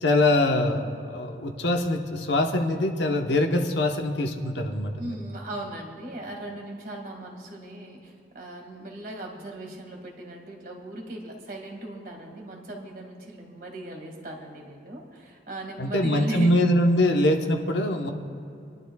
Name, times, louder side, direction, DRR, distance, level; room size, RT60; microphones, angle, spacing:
voice 1, 0.0-5.2 15.8-18.1, left 1 dB, 80° left, 3 dB, 1.0 m, -23 dB
voice 2, 5.0-16.6, right 1 dB, 50° right, 0 dB, 2.0 m, -38 dB
26.5 x 11.0 x 2.3 m, 2.5 s
head